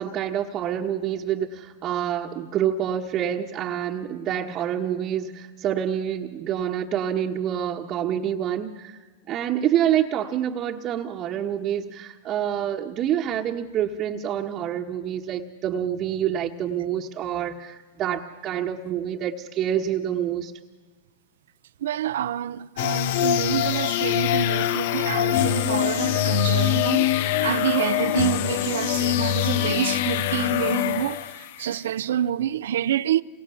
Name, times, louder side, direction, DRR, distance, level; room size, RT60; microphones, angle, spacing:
voice 1, 0.0-9.0 9.3-20.5, right 10 dB, 30° right, 1.4 m, -27 dB
voice 2, 21.8-33.2, right 10 dB, 75° right, 0.8 m, -27 dB
sound 1, 22.8-31.6, left 13 dB, 60° left, 0.9 m, -24 dB
28.0 x 24.0 x 7.1 m
supercardioid pair, 145°, 0 cm